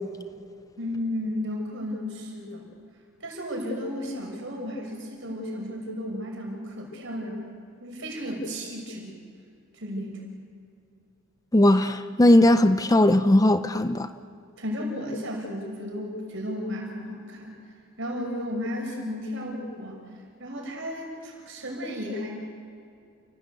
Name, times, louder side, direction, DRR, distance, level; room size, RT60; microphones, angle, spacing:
voice 1, 0.8-2.7 3.2-7.5 7.8-9.1 9.7-10.3 14.6-17.5 18.0-20.0 20.4-22.3, left 1 dB, 60° right, 6.4 m, -33 dB
voice 2, 11.5-14.1, left 1 dB, 15° left, 0.6 m, -18 dB
30.0 x 18.0 x 8.3 m
head